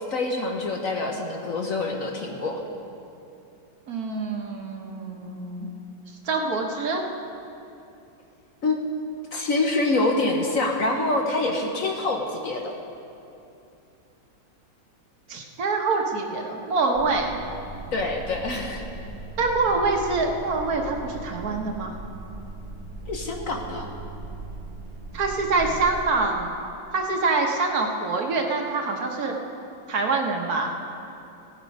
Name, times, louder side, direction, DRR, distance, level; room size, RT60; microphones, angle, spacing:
voice 1, 0.1-2.6 8.6-12.7 17.9-18.9 23.1-23.9, left 2 dB, 55° left, 2 dB, 1.1 m, -26 dB
voice 2, 3.9-5.7 6.2-7.0 15.3-17.3 19.4-21.9 25.1-26.5 26.9-29.3 29.9-30.7, right 3 dB, 55° right, 2 dB, 1.4 m, -25 dB
Alarm, 16.9-26.1, right 2 dB, 20° right, 0.8 m, -39 dB
17.0 x 8.9 x 5.3 m, 2.8 s
omnidirectional pair, 2.0 m